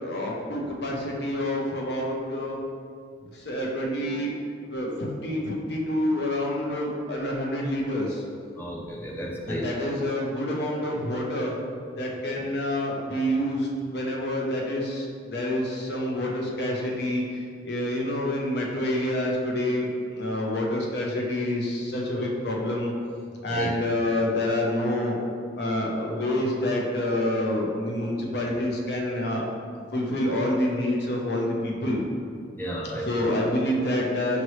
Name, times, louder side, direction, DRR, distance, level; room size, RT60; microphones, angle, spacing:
voice 1, 0.0-2.6 3.4-4.3 4.7-8.2 9.5-11.5 12.0-17.2 17.7-22.9 23.4-25.2 25.6-29.4 29.9-32.0 33.0-34.4, left 1 dB, 65° left, -1 dB, 0.7 m, -27 dB
voice 2, 8.6-9.7 23.5-23.7 32.6-33.3, equal, 10° left, -3 dB, 0.6 m, -33 dB
5.2 x 2.9 x 3.1 m, 2.1 s
head